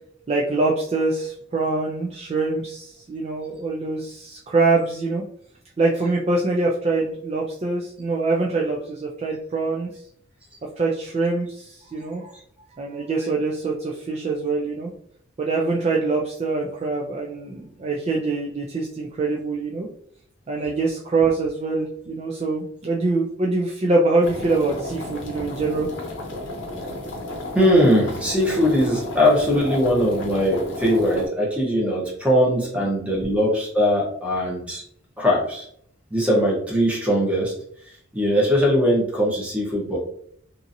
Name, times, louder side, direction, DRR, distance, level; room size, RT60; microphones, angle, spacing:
voice 1, 0.3-5.2 5.8-9.9 10.8-12.3 12.7-14.9 15.4-19.9 20.5-25.9 29.7-29.8, right 3 dB, 30° right, -2 dB, 0.3 m, -24 dB
sound 1, 24.2-31.3, left 1 dB, 60° left, 0.7 m, -33 dB
voice 2, 27.5-34.8 35.2-35.7 36.1-37.5 38.1-40.0, equal, 5° right, -4 dB, 0.9 m, -20 dB
2.8 x 2.6 x 2.5 m, 0.65 s
head